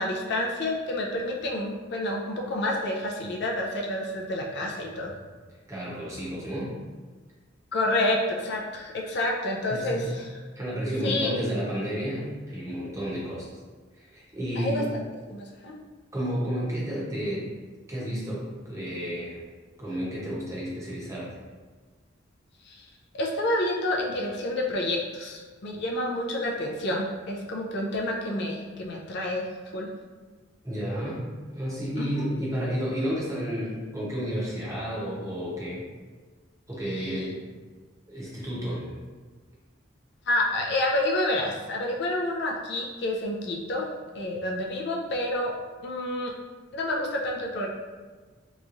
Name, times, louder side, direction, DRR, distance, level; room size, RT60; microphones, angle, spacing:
voice 1, 0.0-5.1 7.7-10.3 11.0-11.3 14.6-15.0 15.3-15.7 22.6-22.9 23.1-29.4 29.7-29.9 32.0-32.3 36.9-37.3 40.3-43.9 44.1-45.5 45.8-46.3 46.7-47.7, left 1 dB, 60° left, -1 dB, 0.4 m, -29 dB
voice 2, 5.7-6.7 9.7-10.1 10.5-13.5 13.9-14.8 16.1-17.4 17.9-19.4 19.8-21.3 30.6-31.2 31.5-35.8 36.7-37.4 38.1-38.9, equal, 15° right, -6 dB, 0.8 m, -31 dB
3.6 x 3.0 x 2.5 m, 1.4 s
head